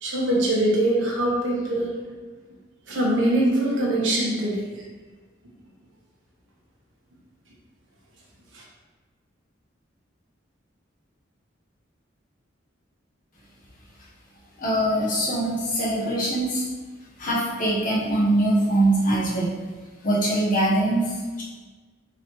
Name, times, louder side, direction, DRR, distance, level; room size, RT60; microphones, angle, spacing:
voice 1, 0.0-1.9 2.9-4.6 8.5-8.6, right 1 dB, 80° right, -3 dB, 1.0 m, -23 dB
voice 2, 14.6-16.7 17.2-19.5 20.0-21.4, right 1 dB, 45° left, -6 dB, 0.9 m, -23 dB
3.8 x 3.1 x 3.0 m, 1.3 s
head